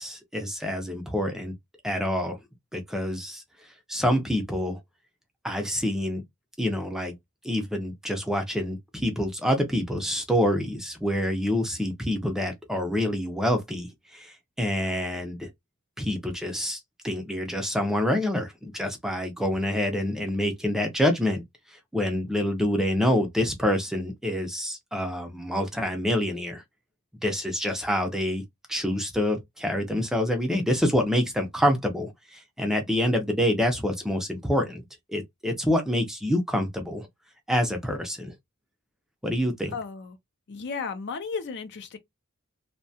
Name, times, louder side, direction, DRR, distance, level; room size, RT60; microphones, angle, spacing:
voice 1, 0.0-1.5 1.8-2.4 2.7-3.4 3.9-4.8 5.4-6.2 6.6-7.1 7.4-15.5 16.0-21.4 21.7-26.6 27.2-28.4 28.7-34.8 35.1-37.1 37.5-38.3 39.2-39.7, equal, ahead, 0.5 m, -27 dB
voice 2, 39.7-40.2 40.5-42.0, left 5 dB, 50° left, 0.5 m, -34 dB
2.7 x 2.2 x 2.6 m
head